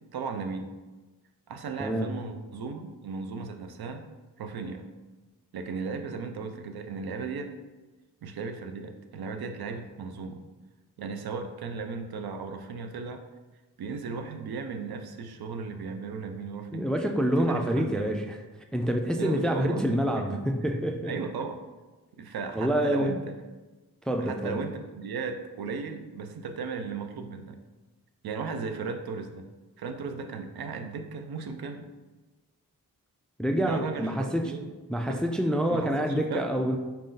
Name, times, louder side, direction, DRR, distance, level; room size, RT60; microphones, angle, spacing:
voice 1, 0.1-0.7 1.5-4.1 4.4-4.8 5.5-7.5 8.2-10.4 11.0-13.2 13.8-16.9 17.4-18.1 19.2-20.8 21.1-21.6 22.2-23.2 24.2-27.6 28.2-29.5 29.8-31.8 33.6-34.7 35.1-35.2 35.7-36.5, right 4 dB, 70° right, 6 dB, 0.5 m, -36 dB
voice 2, 1.8-2.1 16.7-18.4 18.7-21.1 22.5-23.2 24.1-24.6 33.4-34.5 34.9-36.8, equal, ahead, 5 dB, 0.3 m, -27 dB
4.3 x 2.6 x 3.8 m, 1.2 s
cardioid pair, 45°, 39 cm